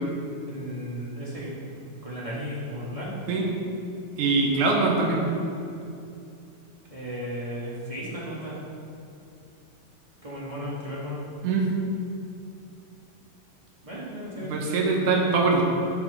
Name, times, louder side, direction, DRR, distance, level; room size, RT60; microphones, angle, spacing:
voice 1, 0.5-1.5 2.0-3.3 6.9-8.5 10.2-11.2 13.8-14.6, equal, 45° right, -7 dB, 0.4 m, -35 dB
voice 2, 4.2-5.3 11.4-11.7 14.4-15.6, right 3 dB, 65° right, -1 dB, 2.6 m, -23 dB
11.0 x 5.8 x 5.6 m, 2.6 s
omnidirectional pair, 4.0 m